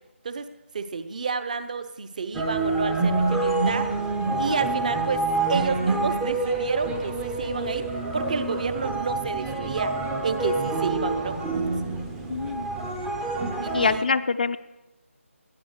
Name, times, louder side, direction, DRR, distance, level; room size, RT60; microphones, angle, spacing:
voice 1, 0.7-3.9 4.3-10.0 10.2-11.4 13.6-14.1, right 5 dB, 35° right, 12 dB, 0.9 m, -30 dB
sound 1, 2.3-14.0, right 3 dB, 5° right, 0.6 m, -27 dB
voice 2, 12.3-12.7 13.7-14.6, left 4 dB, 40° left, 11 dB, 0.5 m, -24 dB
18.5 x 11.5 x 6.6 m, 1.0 s
figure-of-eight pair, 170°, 8 cm